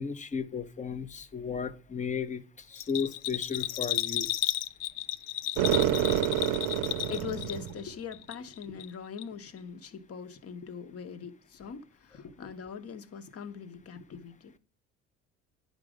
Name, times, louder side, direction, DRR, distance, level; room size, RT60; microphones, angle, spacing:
voice 1, 0.0-4.3 6.6-6.7, left 6 dB, 20° left, 0.8 m, -34 dB
Bell, 2.7-7.8 8.1-8.9 9.2-9.3, left 14 dB, 65° left, 0.6 m, -33 dB
sound 1, 5.6-7.9, right 12 dB, 70° right, 0.7 m, -28 dB
voice 2, 6.9-14.6, left 7 dB, 40° left, 1.1 m, -42 dB
9.3 x 5.3 x 4.9 m
hypercardioid pair, 70°, 35 cm